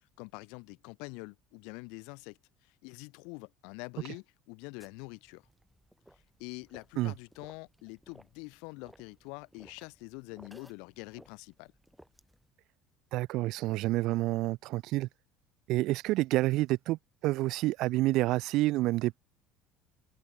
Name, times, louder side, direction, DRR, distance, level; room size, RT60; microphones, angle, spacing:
voice 1, 0.2-2.4 2.8-5.4 6.4-11.7, left 32 dB, 80° left, 4.4 m, -45 dB
sound 1, 4.8-12.5, right 1 dB, ahead, 5.5 m, -60 dB
voice 2, 13.1-15.1 15.7-19.2, right 18 dB, 60° right, 0.6 m, -28 dB
cardioid pair, 160°, 0 cm